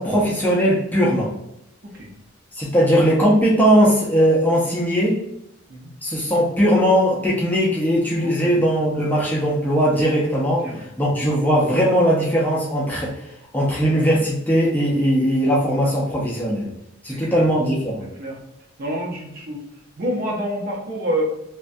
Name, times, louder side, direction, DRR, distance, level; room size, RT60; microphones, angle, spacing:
voice 1, 0.0-1.3 2.5-5.2 6.0-10.7 11.0-13.1 13.5-16.7 17.0-18.0, equal, 10° left, -5 dB, 0.4 m, -19 dB
voice 2, 8.2-8.6 10.6-11.2 17.1-17.4 18.2-18.4 18.8-19.6 20.0-21.2, right 1 dB, 45° right, -2 dB, 0.6 m, -28 dB
2.2 x 2.1 x 2.5 m, 0.83 s
head